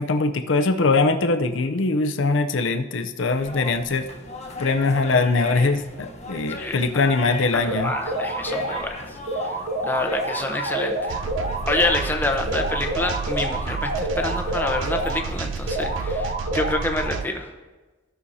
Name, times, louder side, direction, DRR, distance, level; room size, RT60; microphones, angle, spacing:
voice 1, 0.0-4.1 4.6-7.9, left 3 dB, 70° left, 7 dB, 0.6 m, -22 dB
sound 1, 3.3-16.3, left 2 dB, 35° left, 1.0 m, -39 dB
voice 2, 7.5-9.0 9.8-11.2 11.7-17.5, left 2 dB, 10° left, 3 dB, 0.8 m, -27 dB
sound 2, 7.7-8.9 9.3-12.1 12.5-15.3 15.7-17.2, right 1 dB, 40° right, 0.8 m, -28 dB
sound 3, 11.1-17.3, right 4 dB, 70° right, 0.4 m, -31 dB
16.0 x 6.3 x 2.7 m, 1.2 s
head